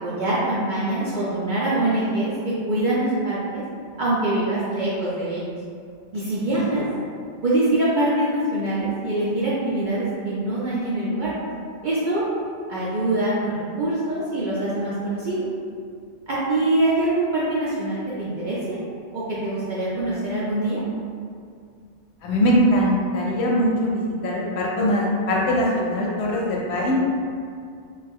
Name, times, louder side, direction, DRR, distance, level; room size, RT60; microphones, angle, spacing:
voice 1, 0.0-3.6 4.0-5.5 6.1-6.8 7.4-11.3 11.8-12.2 12.7-15.5 16.3-18.8 19.1-20.8, right 1 dB, 60° right, -8 dB, 0.5 m, -24 dB
voice 2, 22.2-27.0, equal, 65° left, -3 dB, 0.8 m, -21 dB
3.0 x 2.0 x 3.5 m, 2.3 s
omnidirectional pair, 1.3 m